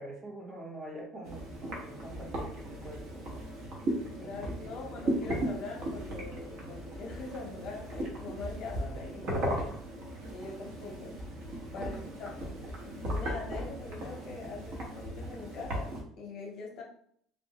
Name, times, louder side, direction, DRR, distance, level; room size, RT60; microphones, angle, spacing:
voice 1, 0.0-3.4 4.2-4.3 4.6-4.9 11.7-12.1, right 1 dB, 15° right, -2 dB, 0.7 m, -46 dB
sound 1, 1.2-16.0, right 1 dB, 55° right, 1.0 m, -37 dB
voice 2, 4.1-9.8 10.3-11.2 11.7-12.6 13.1-16.8, left 3 dB, 50° left, 0 dB, 0.7 m, -42 dB
3.4 x 2.0 x 2.8 m, 0.64 s
cardioid pair, 150°, 0 cm